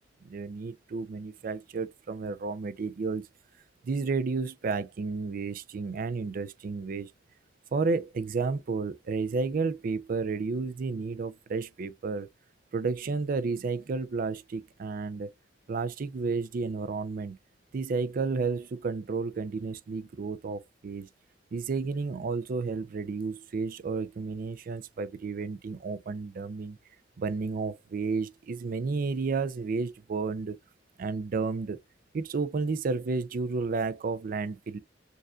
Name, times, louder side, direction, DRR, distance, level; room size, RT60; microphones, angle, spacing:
voice 1, 0.2-3.3 3.8-7.1 7.7-12.3 12.7-15.3 15.7-17.4 17.7-21.1 21.5-26.8 27.2-30.6 31.0-31.8 32.1-34.8, right 4 dB, 50° right, 0.4 m, -32 dB
6.5 x 2.4 x 2.3 m
head